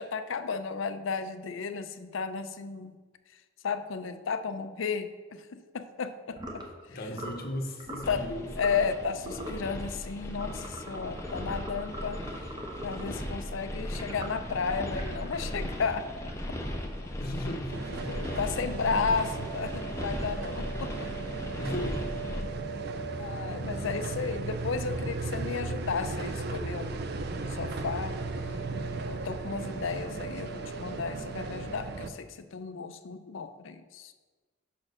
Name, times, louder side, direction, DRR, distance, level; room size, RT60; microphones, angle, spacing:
voice 1, 0.0-3.0 3.6-6.6 6.9-7.0 8.1-8.2 8.6-12.6 12.8-16.1 18.1-21.1 23.2-28.2 29.0-34.1, left 5 dB, 70° left, 10 dB, 0.5 m, -33 dB
sound 1, 6.3-6.7 7.1-7.4 7.8-8.1 8.5-8.9 9.2-9.6 10.3-13.2 13.9-16.7, right 1 dB, 20° right, 0.9 m, -42 dB
voice 2, 6.9-8.5 17.2-18.3 20.7-20.8 21.6-22.4 23.2-23.3, equal, 45° left, 4 dB, 0.8 m, -37 dB
sound 2, 8.0-22.4, left 1 dB, 15° left, 0.6 m, -37 dB
sound 3, 17.7-32.1, right 3 dB, 50° right, 0.5 m, -36 dB
5.9 x 4.3 x 6.3 m, 1.4 s
head